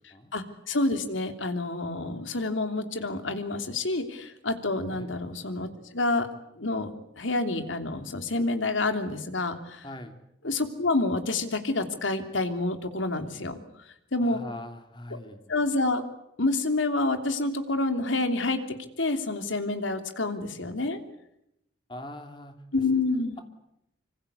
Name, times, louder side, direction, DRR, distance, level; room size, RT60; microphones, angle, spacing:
voice 1, 0.3-6.3 6.6-6.9 7.2-9.9 10.4-13.6 14.1-14.4 15.5-16.1 16.4-18.6 19.0-21.0 22.7-23.4, left 2 dB, 85° left, 7 dB, 3.1 m, -28 dB
voice 2, 9.8-10.1 14.2-15.4 21.9-22.6, left 1 dB, 25° left, 6 dB, 2.9 m, -41 dB
26.0 x 25.5 x 8.3 m, 0.81 s
head